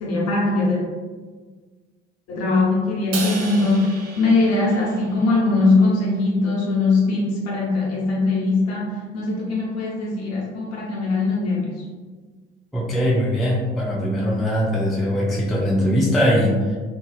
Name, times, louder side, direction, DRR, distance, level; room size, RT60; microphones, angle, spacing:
voice 1, 0.0-0.8 2.3-11.7, left 3 dB, 50° left, -4 dB, 0.9 m, -21 dB
Crash cymbal, 3.1-5.5, right 4 dB, 60° right, 0.5 m, -34 dB
voice 2, 12.7-16.8, equal, ahead, -4 dB, 0.3 m, -21 dB
2.5 x 2.3 x 2.3 m, 1.5 s
figure-of-eight pair, 50°, 33 cm